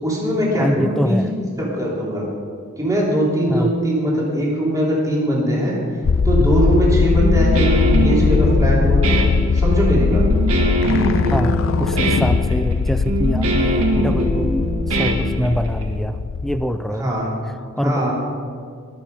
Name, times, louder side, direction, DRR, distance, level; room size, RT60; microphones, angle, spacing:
voice 1, 0.0-1.3 1.6-2.3 2.8-5.7 6.2-9.0 9.5-10.2 17.0-17.3 17.8-18.2, equal, 15° right, -5 dB, 2.9 m, -20 dB
voice 2, 0.6-1.3 3.5-3.7 11.3-17.1 17.8-18.2, equal, ahead, 9 dB, 0.4 m, -24 dB
sound 1, 6.0-16.7, left 4 dB, 60° left, 0.4 m, -19 dB
Guitar, 7.2-15.8, right 1 dB, 70° right, 1.9 m, -22 dB
22.0 x 7.4 x 5.2 m, 2.1 s
head